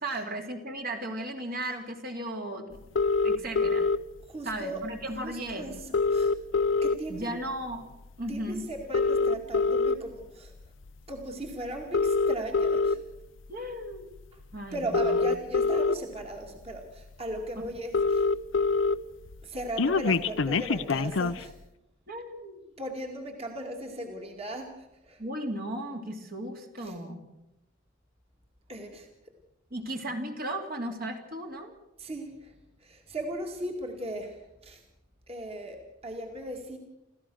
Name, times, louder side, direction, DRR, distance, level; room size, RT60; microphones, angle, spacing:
voice 1, 0.0-2.9 3.2-3.9 4.4-5.7 7.1-7.9 8.2-8.7 13.5-14.1 14.5-15.2 17.6-17.7 22.1-22.6 25.2-27.2 29.7-31.7, right 1 dB, 50° right, 3 dB, 2.7 m, -35 dB
sound 1, 3.0-4.0 5.1-5.2 5.5-5.6 5.8-7.2 7.7-7.9 8.8-9.9 10.7-10.9 11.8-13.0 14.2-14.3 14.8-15.9 16.6-16.7 17.0-17.1 17.4-17.5 17.6-18.9 19.3-21.4, left 4 dB, 70° left, 0.7 m, -25 dB
voice 2, 4.3-4.8 5.2-6.3 6.8-7.3 8.3-10.5 11.1-13.0 14.7-18.2 19.4-21.5 22.8-25.2 26.8-27.0 28.7-29.1 32.0-32.5 32.8-34.8 35.3-36.8, right 1 dB, 30° right, 2 dB, 2.4 m, -37 dB
28.5 x 14.5 x 6.4 m, 0.91 s
head